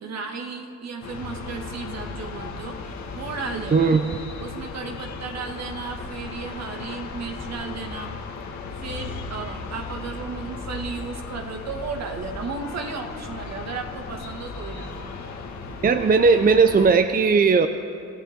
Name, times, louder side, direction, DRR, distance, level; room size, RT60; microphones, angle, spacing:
voice 1, 0.0-3.9 4.4-8.2 8.8-15.1, right 4 dB, 60° right, 3 dB, 2.1 m, -34 dB
sound 1, 1.0-16.9, left 4 dB, 65° left, 2.0 m, -36 dB
voice 2, 3.7-4.0 15.8-17.7, right 4 dB, 30° right, 8 dB, 0.7 m, -17 dB
25.5 x 15.0 x 3.8 m, 2.6 s
cardioid pair, 90°, 30 cm